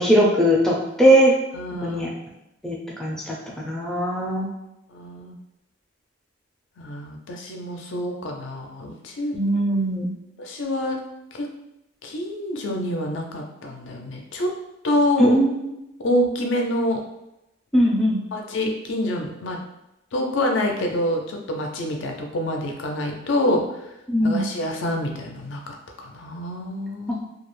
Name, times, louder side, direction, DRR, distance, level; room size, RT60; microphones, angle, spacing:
voice 1, 0.0-1.3 1.8-2.1 2.6-3.4 3.6-4.5 9.3-10.1 15.2-15.5 17.7-18.2 24.1-24.4, equal, 5° left, -4 dB, 0.4 m, -19 dB
voice 2, 1.5-2.1 4.9-5.3 6.8-9.4 10.4-11.0 11.3-11.5 12.0-14.5 14.8-15.4 16.0-17.0 18.3-19.6 20.1-23.9 24.2-27.2, left 1 dB, 65° left, 2 dB, 0.4 m, -26 dB
2.3 x 2.0 x 3.0 m, 0.89 s
head